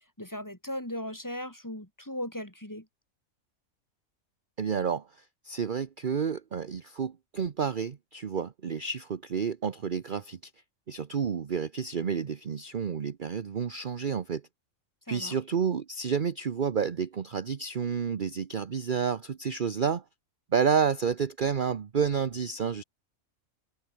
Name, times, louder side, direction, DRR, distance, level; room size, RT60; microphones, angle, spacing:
voice 1, 0.0-2.9 15.1-15.4, left 1 dB, 15° left, 3.2 m, -38 dB
voice 2, 4.6-10.5 10.9-14.4 15.1-20.0 20.5-22.8, right 6 dB, 40° right, 1.0 m, -30 dB
omnidirectional pair, 1.4 m